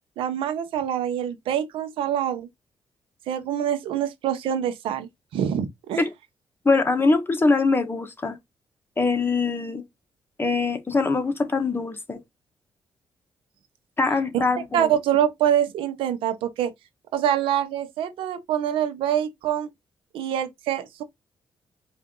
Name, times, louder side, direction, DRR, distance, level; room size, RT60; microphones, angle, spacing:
voice 1, 0.2-2.5 3.3-6.0 14.3-14.4 14.7-16.7 17.1-19.7 20.1-21.0, right 10 dB, 90° right, 0.9 m, -25 dB
voice 2, 6.6-8.4 9.0-9.8 10.4-12.2 14.0-14.9, left 3 dB, 25° left, 1.3 m, -23 dB
4.8 x 2.7 x 3.7 m
cardioid pair, 70°, 9 cm